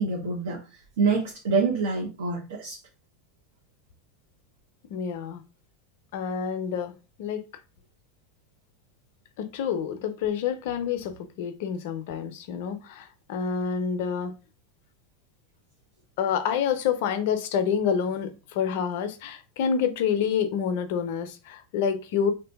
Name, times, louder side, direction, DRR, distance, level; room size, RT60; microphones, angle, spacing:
voice 1, 0.0-2.8, right 4 dB, 75° right, 0.7 m, -26 dB
voice 2, 4.9-5.4 6.1-6.9 7.2-7.4 9.4-14.3 16.2-22.3, left 7 dB, 65° left, 0.4 m, -28 dB
2.7 x 2.5 x 2.2 m
hypercardioid pair, 90°, 0 cm